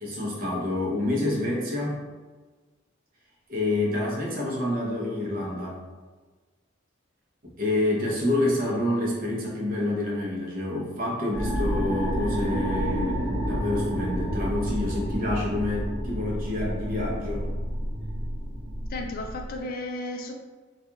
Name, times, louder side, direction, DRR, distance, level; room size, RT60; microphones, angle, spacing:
voice 1, 0.0-2.0 3.5-5.8 7.6-17.5, left 1 dB, 45° right, -4 dB, 0.7 m, -28 dB
sound 1, 11.3-19.6, equal, 15° left, 0.7 m, -30 dB
voice 2, 18.9-20.3, left 2 dB, 45° left, 3 dB, 0.3 m, -34 dB
2.3 x 2.3 x 2.8 m, 1.3 s
head